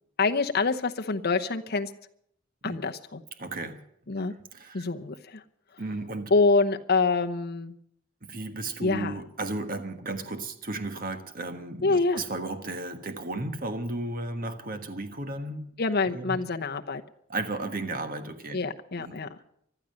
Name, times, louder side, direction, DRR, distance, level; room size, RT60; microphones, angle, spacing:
voice 1, 0.2-1.9 2.6-3.2 4.1-4.3 4.7-5.4 6.3-7.7 8.8-9.1 11.8-12.2 15.8-17.0 18.5-19.3, left 3 dB, 50° left, 6 dB, 0.9 m, -26 dB
voice 2, 3.4-3.8 4.5-4.8 5.8-6.3 8.2-15.7 16.1-16.4 17.3-18.6 19.0-19.2, right 2 dB, 45° right, 8 dB, 1.5 m, -34 dB
15.0 x 12.0 x 7.7 m, 0.71 s
head